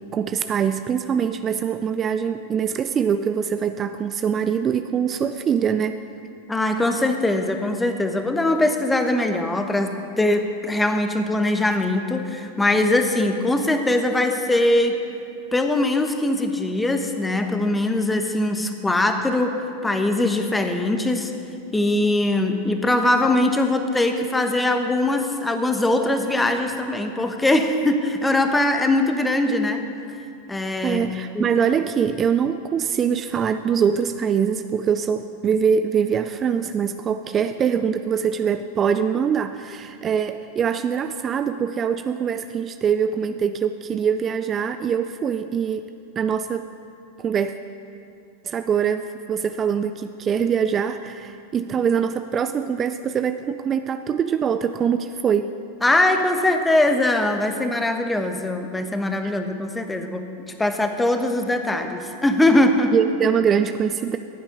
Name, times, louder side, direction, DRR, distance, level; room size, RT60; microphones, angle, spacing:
voice 1, 0.1-6.0 30.8-45.9 46.2-46.6 47.2-47.5 48.4-55.5 62.9-64.2, right 7 dB, 30° right, 10 dB, 0.4 m, -23 dB
voice 2, 6.5-15.0 15.5-21.3 21.7-29.8 30.5-31.0 31.3-31.5 55.8-60.3 60.6-62.9, left 1 dB, 10° left, 6 dB, 1.2 m, -21 dB
14.5 x 8.9 x 5.3 m, 2.5 s
hypercardioid pair, 95°, 0 cm